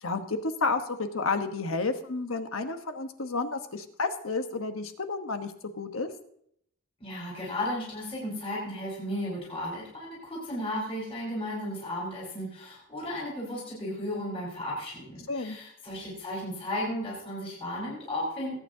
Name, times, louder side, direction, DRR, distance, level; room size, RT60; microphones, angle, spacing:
voice 1, 0.0-5.5 5.8-6.1 15.3-15.6, left 3 dB, 75° left, 7 dB, 1.2 m, -31 dB
voice 2, 7.0-18.6, left 1 dB, 25° left, -5 dB, 5.4 m, -34 dB
21.5 x 9.1 x 2.8 m, 0.71 s
head